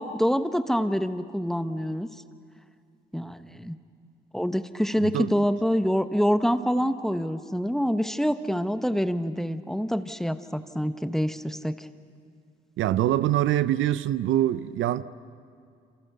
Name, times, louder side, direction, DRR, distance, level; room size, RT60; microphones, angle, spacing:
voice 1, 0.0-2.1 3.1-3.8 4.3-11.9, equal, ahead, 1.1 m, -26 dB
voice 2, 5.0-5.3 12.8-15.0, right 13 dB, 80° right, 0.7 m, -24 dB
28.0 x 27.5 x 6.7 m
cardioid pair, 90°, 20 cm